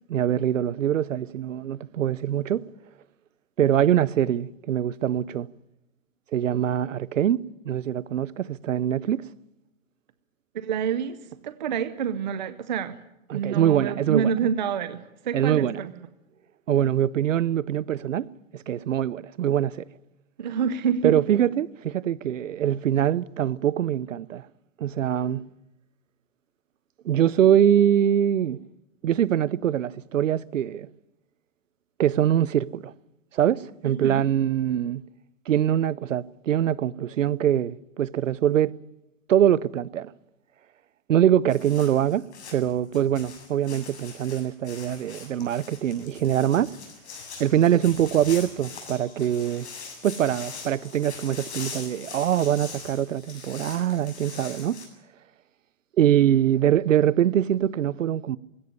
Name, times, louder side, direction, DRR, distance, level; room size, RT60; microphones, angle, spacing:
voice 1, 0.1-2.6 3.6-5.5 6.3-9.3 13.3-14.3 15.3-15.8 16.7-18.3 18.5-19.8 21.0-24.4 24.8-25.5 27.0-28.6 29.0-30.9 32.0-32.9 33.3-35.0 35.5-38.7 39.3-40.1 41.1-42.3 42.5-46.8 47.4-49.7 50.0-54.8 56.0-58.4, right 10 dB, 65° right, 0.8 m, -23 dB
voice 2, 10.5-11.2 11.4-13.0 13.3-15.9 20.4-21.1 33.8-34.2, right 7 dB, 35° right, 0.7 m, -27 dB
sound 1, 41.5-54.8, left 5 dB, 50° left, 8.0 m, -42 dB
20.0 x 17.0 x 9.9 m
hypercardioid pair, 170°, 42 cm